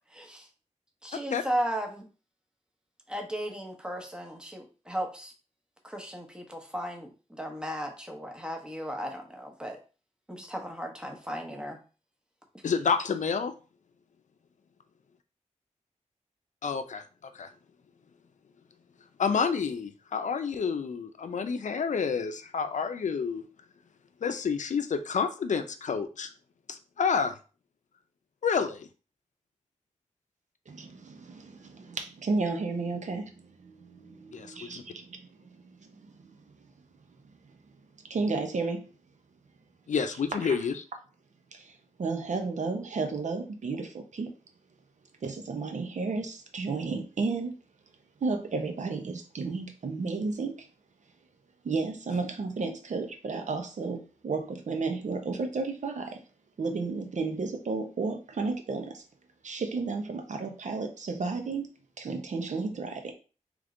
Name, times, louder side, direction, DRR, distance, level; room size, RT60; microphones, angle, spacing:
voice 1, 0.1-0.5 1.0-2.1 3.1-5.3 5.8-9.8 10.3-11.8, equal, 5° right, 2 dB, 1.0 m, -35 dB
voice 2, 12.6-13.5 16.6-17.0 17.3-17.5 19.2-23.4 24.2-26.3 26.7-27.4 28.4-28.9 34.3-34.8 39.9-40.8, left 6 dB, 75° left, 8 dB, 0.5 m, -29 dB
voice 3, 30.7-36.6 38.1-38.8 40.4-40.5 41.5-44.3 45.2-47.5 48.2-50.7 51.6-56.2 56.6-59.0 59.4-63.1, right 4 dB, 70° right, 5 dB, 0.8 m, -33 dB
3.5 x 3.2 x 3.7 m, 0.35 s
wide cardioid pair, 85°, 13 cm